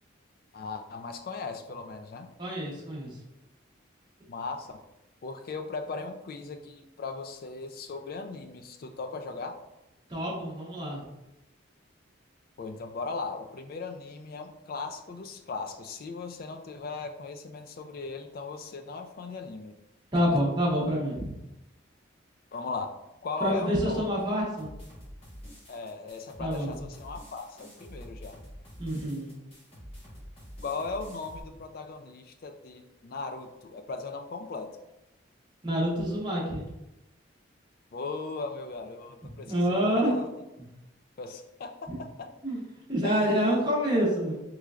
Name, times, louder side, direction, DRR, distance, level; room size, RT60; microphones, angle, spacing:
voice 1, 0.5-2.3 4.3-4.8 5.2-9.6 12.6-19.8 20.1-20.4 22.5-24.1 25.7-28.4 30.6-34.8 37.9-40.3 41.2-42.3 43.0-43.5, left 4 dB, 45° left, 6 dB, 0.3 m, -38 dB
voice 2, 2.4-3.1 10.1-11.0 20.1-21.3 23.4-24.7 26.4-26.7 28.8-29.3 35.6-36.7 39.4-40.2 40.6-40.7 41.9-42.0 42.4-42.6 42.9-44.4, equal, 20° right, -5 dB, 0.8 m, -27 dB
sound 1, 24.6-31.4, equal, 30° left, 1.0 m, -47 dB
3.7 x 3.1 x 2.3 m, 0.92 s
head